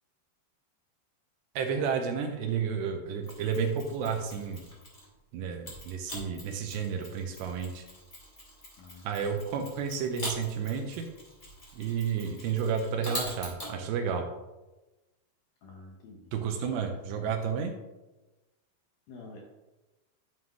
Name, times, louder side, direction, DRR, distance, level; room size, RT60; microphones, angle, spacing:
voice 1, 1.6-4.7 5.3-7.9 9.0-11.1 11.7-14.3 16.3-17.8, right 6 dB, 80° right, 4 dB, 2.7 m, -31 dB
Mechanisms, 3.2-5.1 5.6-13.7, left 1 dB, 25° left, 1.6 m, -43 dB
voice 2, 8.8-9.4 15.6-16.3 19.1-19.4, left 3 dB, 75° left, 0 dB, 2.3 m, -49 dB
11.0 x 7.4 x 3.1 m, 1.1 s
omnidirectional pair, 5.3 m